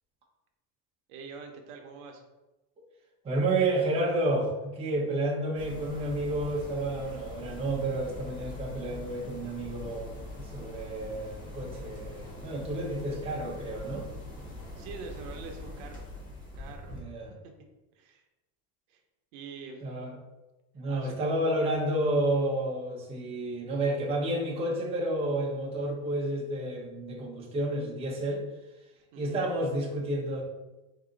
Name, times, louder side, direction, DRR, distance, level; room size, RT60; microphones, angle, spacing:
voice 1, 1.1-2.2 14.8-16.1 16.6-17.0 18.0-18.2 18.9-19.0 19.3-19.8 20.9-21.2 29.1-29.4, right 5 dB, 65° right, 4 dB, 0.8 m, -44 dB
voice 2, 3.2-10.2 10.5-14.1 16.9-17.3 19.8-20.2 20.7-28.4 29.2-30.4, right 1 dB, 15° right, -3 dB, 0.7 m, -30 dB
sound 1, 5.6-17.0, left 1 dB, 20° left, 1.4 m, -43 dB
4.8 x 2.7 x 3.8 m, 1.1 s
cardioid pair, 155°, 44 cm